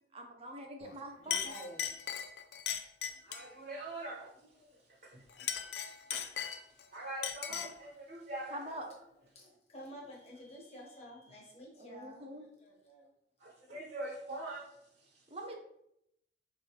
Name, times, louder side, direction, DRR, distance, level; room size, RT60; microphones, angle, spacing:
voice 1, 0.1-1.5 8.5-8.8 11.8-12.4 15.3-15.5, right 1 dB, 35° right, 2 dB, 0.5 m, -44 dB
Chink clink, 0.8-1.0 1.3-3.5 5.3-6.8 7.2-7.8, left 9 dB, 65° left, 0.4 m, -38 dB
voice 2, 1.2-1.9 3.0-3.4 4.6-4.7 5.3-5.7 9.3-13.1, equal, 35° left, -3 dB, 1.1 m, -51 dB
voice 3, 3.2-4.3 5.0-5.2 6.1-6.6 6.9-8.7 13.4-14.7 15.0-15.1, right 2 dB, 55° right, -4 dB, 0.9 m, -43 dB
4.5 x 3.0 x 2.9 m, 0.77 s
head